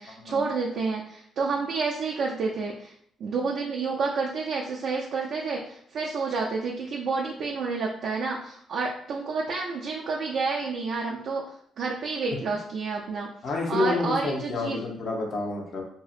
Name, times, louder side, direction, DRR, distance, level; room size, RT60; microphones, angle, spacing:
voice 1, 0.0-2.9 3.2-13.3 13.7-14.8, right 4 dB, 70° right, -2 dB, 0.3 m, -29 dB
voice 2, 13.4-15.8, left 3 dB, 60° left, 0 dB, 0.6 m, -28 dB
2.7 x 2.0 x 2.4 m, 0.66 s
cardioid pair, 90°, 0 cm